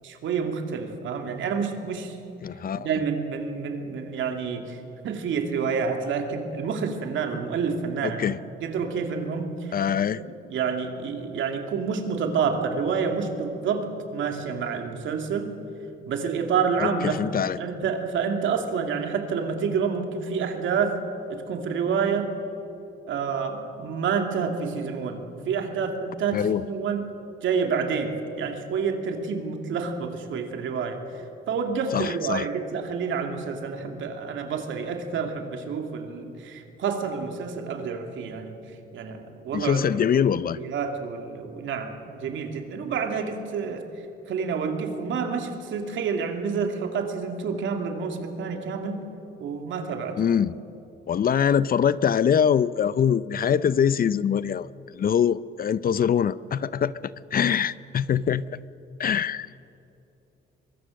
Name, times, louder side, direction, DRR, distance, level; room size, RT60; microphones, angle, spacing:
voice 1, 0.0-2.2 2.8-4.8 5.0-8.3 8.6-9.8 10.5-15.5 16.1-21.0 21.3-22.3 23.1-27.1 27.4-38.6 38.9-39.8 40.6-43.9 44.3-49.0 49.4-50.2, right 6 dB, 75° right, 4 dB, 2.7 m, -28 dB
voice 2, 2.4-2.9 8.0-8.4 9.7-10.2 16.8-17.6 26.3-26.6 31.9-32.5 39.5-40.6 50.2-50.6 51.1-54.7 54.9-56.9 57.3-58.4 59.0-59.5, left 8 dB, 50° left, 17 dB, 0.6 m, -23 dB
24.0 x 22.5 x 6.6 m, 2.9 s
cardioid pair, 90°, 20 cm